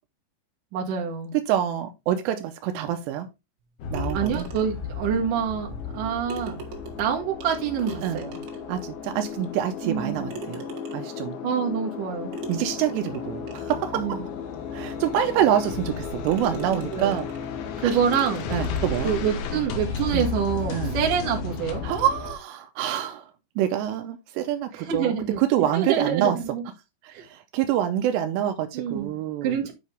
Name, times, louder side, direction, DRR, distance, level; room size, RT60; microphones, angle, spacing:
voice 1, 0.7-1.4 4.1-6.6 7.0-8.4 9.8-10.3 11.4-12.3 13.9-14.3 16.7-17.2 17.8-18.6 19.0-21.8 24.7-26.6 27.1-27.2 28.7-29.1 29.4-29.7, right 7 dB, 55° right, 2.7 m, -27 dB
voice 2, 1.5-3.3 3.9-4.5 8.0-8.2 8.7-10.7 10.9-11.4 12.5-14.2 14.7-17.3 17.8-18.0 18.5-19.1 19.5-19.7 20.1-20.3 20.7-21.0 21.8-23.3 23.6-26.4 27.0-29.6, right 11 dB, 85° right, 2.5 m, -26 dB
sound 1, 3.8-22.4, left 6 dB, 80° left, 3.7 m, -33 dB
sound 2, 3.9-4.9 5.9-6.0 6.3-8.8 9.4-9.5 10.3-11.2 12.3-13.9 14.5-14.6 15.2-15.3 15.8-16.0 16.3-17.6 18.1-19.3, right 6 dB, 70° right, 4.0 m, -41 dB
9.4 x 5.4 x 3.3 m
omnidirectional pair, 5.6 m